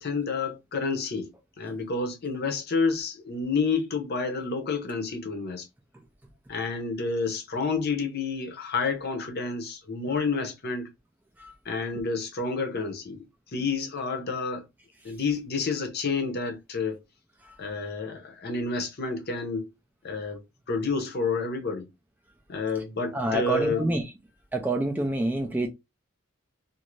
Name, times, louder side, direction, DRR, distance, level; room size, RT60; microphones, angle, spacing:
voice 1, 0.0-1.3 1.6-5.7 6.5-10.9 11.6-13.2 13.5-14.6 15.0-17.0 17.6-19.7 20.0-21.9 22.5-23.8, left 4 dB, 45° left, 0.7 m, -29 dB
voice 2, 23.1-24.0 24.5-25.7, right 1 dB, 10° right, 0.3 m, -27 dB
2.6 x 2.5 x 3.0 m
head